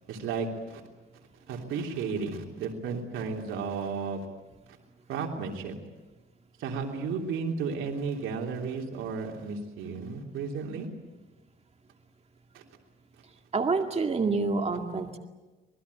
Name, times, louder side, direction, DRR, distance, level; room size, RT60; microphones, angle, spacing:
voice 1, 0.1-0.8 1.5-4.3 5.1-5.8 6.6-10.9 12.5-12.6, right 5 dB, 85° right, 1 dB, 3.3 m, -33 dB
voice 2, 13.5-15.2, right 4 dB, 30° right, 5 dB, 2.2 m, -27 dB
26.5 x 20.0 x 8.5 m, 1.1 s
cardioid pair, 95°, 20 cm